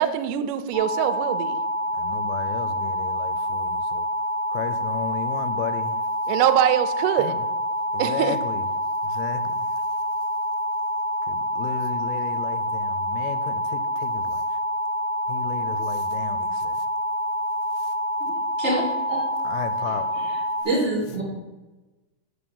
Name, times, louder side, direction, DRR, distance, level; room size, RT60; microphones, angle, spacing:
voice 1, 0.0-1.6 6.3-7.3 8.0-8.4, right 11 dB, 80° right, 1.9 m, -23 dB
sound 1, 0.7-20.6, equal, 70° left, 2.0 m, -27 dB
voice 2, 2.0-4.1 4.5-6.0 7.2-7.4 7.9-8.6 9.0-9.4 11.3-14.4 15.3-16.8 19.5-20.1, left 9 dB, 90° left, 2.4 m, -34 dB
voice 3, 18.2-18.8 19.1-19.2 19.8-21.2, right 1 dB, 60° right, 0.6 m, -27 dB
7.0 x 4.8 x 7.0 m
omnidirectional pair, 4.2 m